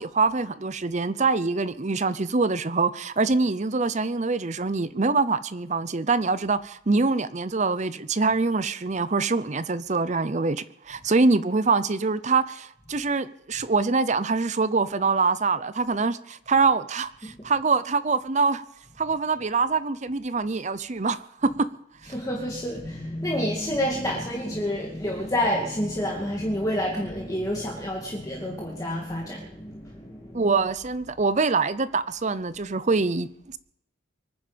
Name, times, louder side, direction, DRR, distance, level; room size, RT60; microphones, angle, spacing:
voice 1, 0.0-18.6 19.0-21.7 30.3-33.6, right 4 dB, 40° right, 0.7 m, -24 dB
voice 2, 22.0-30.5, equal, 20° left, 2.4 m, -29 dB
24.5 x 10.0 x 5.2 m
head